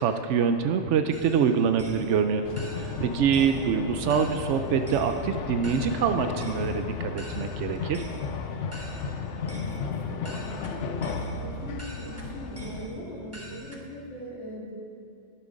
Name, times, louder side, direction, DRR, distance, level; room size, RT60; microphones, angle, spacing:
voice 1, 0.0-2.4 2.7-8.0, right 7 dB, 85° right, 7 dB, 1.0 m, -25 dB
sound 1, 1.1-13.8, right 1 dB, 15° right, 1.0 m, -45 dB
sound 2, 2.4-12.9, left 5 dB, 90° left, 1.0 m, -34 dB
voice 2, 9.4-14.7, equal, 70° left, -6 dB, 2.7 m, -41 dB
11.5 x 11.0 x 5.1 m, 2.5 s
omnidirectional pair, 1.2 m